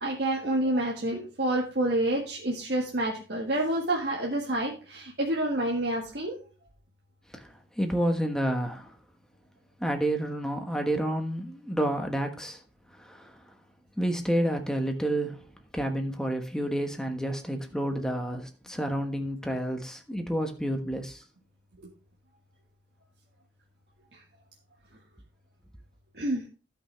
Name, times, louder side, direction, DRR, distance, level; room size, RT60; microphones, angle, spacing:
voice 1, 0.0-6.4 24.1-24.2 26.1-26.4, right 1 dB, 65° right, -2 dB, 1.7 m, -28 dB
voice 2, 7.3-9.0 9.8-12.6 13.0-13.4 14.0-15.5 15.7-21.2, right 1 dB, 5° left, 4 dB, 1.3 m, -30 dB
16.0 x 5.9 x 3.3 m, 0.36 s
head